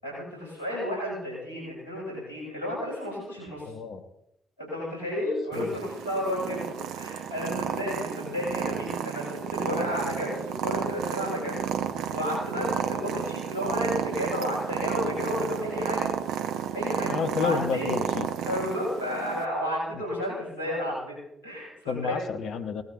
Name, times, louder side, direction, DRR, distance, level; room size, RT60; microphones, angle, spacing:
voice 1, 0.0-3.7 4.6-11.7 12.1-16.1 16.7-17.9 18.4-21.2 21.4-22.3, left 1 dB, 85° left, -4 dB, 7.8 m, -32 dB
voice 2, 3.6-4.1 5.5-5.7 17.1-18.3 19.9-20.0 21.9-22.8, left 6 dB, 65° left, 8 dB, 1.2 m, -30 dB
Purr, 5.5-19.4, right 8 dB, 70° right, 0.9 m, -32 dB
18.5 x 14.0 x 4.3 m, 0.79 s
figure-of-eight pair, 40°, 0 cm